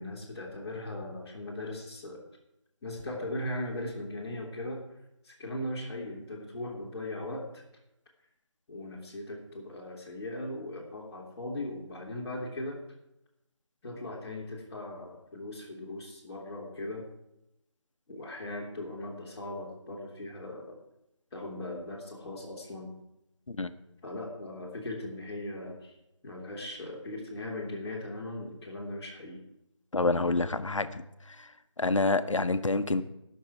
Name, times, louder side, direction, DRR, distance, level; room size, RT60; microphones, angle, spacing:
voice 1, 0.0-2.2 2.8-4.8 5.2-7.6 8.7-12.8 13.8-17.0 18.1-20.8 21.3-22.9 24.0-25.9 26.2-29.4, left 1 dB, 5° left, -9 dB, 1.4 m, -38 dB
voice 2, 29.9-31.5 31.8-33.0, left 3 dB, 75° left, 10 dB, 0.9 m, -28 dB
19.0 x 6.5 x 4.7 m, 0.87 s
figure-of-eight pair, 170°, 16 cm